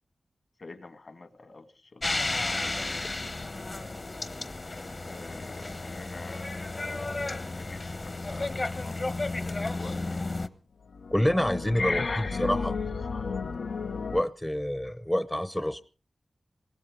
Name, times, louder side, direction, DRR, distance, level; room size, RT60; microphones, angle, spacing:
voice 1, 0.6-2.2 2.5-3.1 5.0-7.1 7.5-9.2 9.7-10.2 11.8-13.4 14.9-15.0, left 3 dB, 60° left, 1.8 m, -40 dB
sound 1, 2.0-10.5, left 2 dB, 45° left, 1.0 m, -33 dB
sound 2, 9.0-9.7 10.9-14.2, left 4 dB, 90° left, 0.7 m, -34 dB
voice 2, 11.1-12.0 12.4-12.7 14.1-15.8, equal, 10° left, 0.7 m, -27 dB
20.0 x 16.5 x 3.7 m
wide cardioid pair, 70°, 0 cm